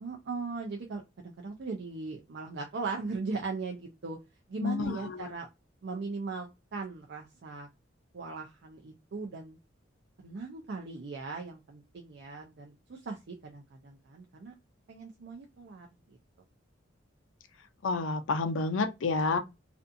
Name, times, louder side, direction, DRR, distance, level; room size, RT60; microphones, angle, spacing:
voice 1, 0.0-4.2 4.5-5.5 5.8-7.7 8.1-9.6 10.2-14.5 14.9-16.2, right 4 dB, 60° right, 0.4 m, -39 dB
voice 2, 4.6-5.3 17.8-19.4, left 3 dB, 75° left, 0.5 m, -29 dB
2.5 x 2.4 x 2.5 m
head